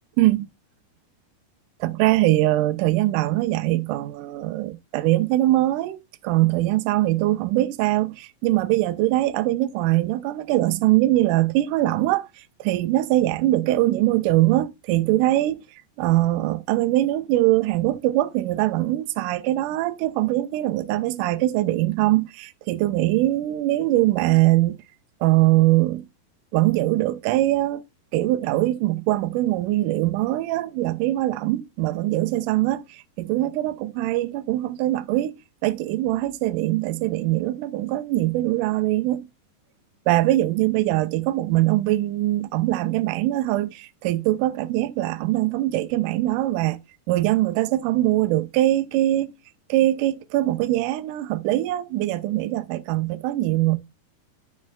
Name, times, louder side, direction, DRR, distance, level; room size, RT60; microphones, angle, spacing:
voice 1, 1.8-6.0 6.2-15.6 16.0-24.8 25.2-26.1 26.5-27.8 28.1-35.4 35.6-39.3 40.1-46.8 47.1-49.3 49.7-53.8, right 16 dB, 80° right, 1.9 m, -22 dB
9.5 x 6.1 x 2.2 m
omnidirectional pair, 4.1 m